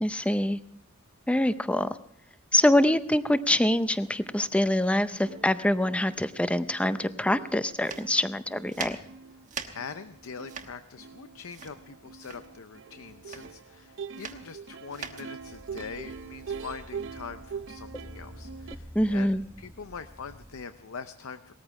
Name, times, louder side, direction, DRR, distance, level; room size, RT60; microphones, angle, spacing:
voice 1, 0.0-0.6 1.3-2.0 2.5-9.0 18.9-19.4, left 1 dB, 5° left, 12 dB, 0.5 m, -25 dB
Plucked string instrument, 5.2-18.8, right 6 dB, 60° right, 0.6 m, -44 dB
sound 1, 7.8-17.0, right 6 dB, 35° right, 1.3 m, -42 dB
voice 2, 9.7-21.5, left 5 dB, 75° left, 11 dB, 0.6 m, -43 dB
sound 2, 15.4-20.7, equal, 10° right, 0.9 m, -48 dB
19.0 x 14.0 x 4.8 m, 0.73 s
head